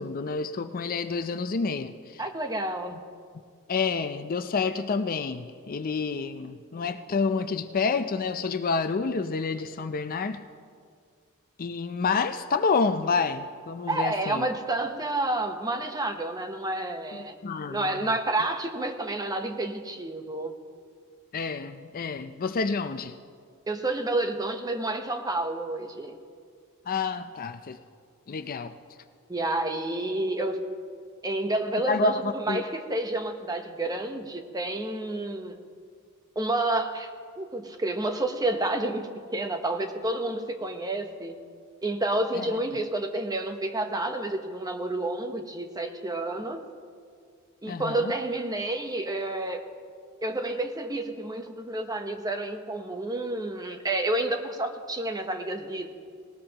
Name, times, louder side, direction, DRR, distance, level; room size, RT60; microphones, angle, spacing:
voice 1, 0.0-2.2 3.7-10.4 11.6-14.5 17.1-18.1 21.3-23.1 26.9-27.8 28.3-28.7 31.9-32.6 42.3-42.6 47.7-48.1, left 4 dB, 40° left, 10 dB, 0.4 m, -29 dB
voice 2, 2.2-3.0 13.9-17.4 17.7-20.5 23.7-26.2 29.3-30.7 31.2-35.6 36.4-37.1 37.4-41.4 41.8-46.6 47.6-49.6 50.2-55.9, right 2 dB, 20° right, 6 dB, 0.9 m, -29 dB
18.5 x 18.5 x 2.9 m, 2.1 s
head